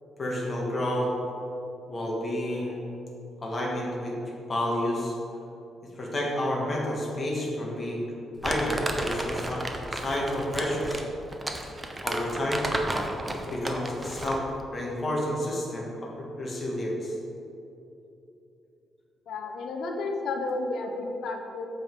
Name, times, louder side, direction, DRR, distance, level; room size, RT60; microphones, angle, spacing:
voice 1, 0.2-1.1 1.9-2.9 3.4-4.2 4.5-5.1 6.0-8.1 8.4-11.0 12.0-12.6 13.3-14.4 14.7-17.1, left 1 dB, 30° left, -3 dB, 1.6 m, -30 dB
Crumpling crinkling, 8.4-14.5, right 1 dB, 15° right, 0.7 m, -33 dB
voice 2, 19.3-21.7, left 3 dB, 75° left, 3 dB, 0.7 m, -32 dB
7.5 x 5.3 x 4.7 m, 2.8 s
cardioid pair, 120°, 0 cm